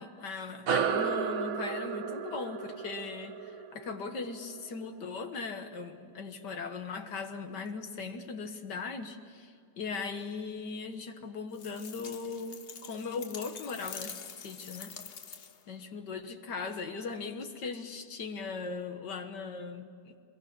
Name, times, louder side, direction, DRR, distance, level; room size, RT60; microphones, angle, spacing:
voice 1, 0.0-15.0 15.7-20.2, left 4 dB, 75° left, 6 dB, 2.0 m, -39 dB
sound 1, 0.7-5.5, right 6 dB, 55° right, 1.3 m, -34 dB
sound 2, 11.5-15.7, left 6 dB, 45° left, 0.8 m, -46 dB
24.0 x 22.0 x 8.4 m, 2.2 s
omnidirectional pair, 1.9 m